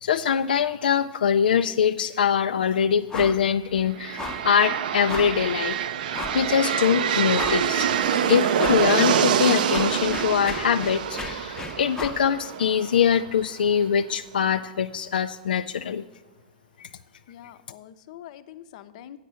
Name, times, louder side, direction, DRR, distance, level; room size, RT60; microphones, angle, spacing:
voice 1, 0.0-5.8 6.3-7.9 8.3-16.0 16.8-16.9, left 7 dB, 90° left, 8 dB, 0.3 m, -23 dB
sound 1, 3.1-3.5 3.7-3.8 4.2-4.5 5.1-5.4 6.1-6.5 6.9-7.0 7.3-7.9 8.6-8.9 9.3-12.3, left 4 dB, 10° left, 0.8 m, -35 dB
sound 2, 3.9-13.7, right 9 dB, 70° right, 0.5 m, -26 dB
voice 2, 17.3-19.2, left 11 dB, 55° left, 12 dB, 0.7 m, -44 dB
8.2 x 6.3 x 8.2 m, 1.1 s
hypercardioid pair, 130°, 5 cm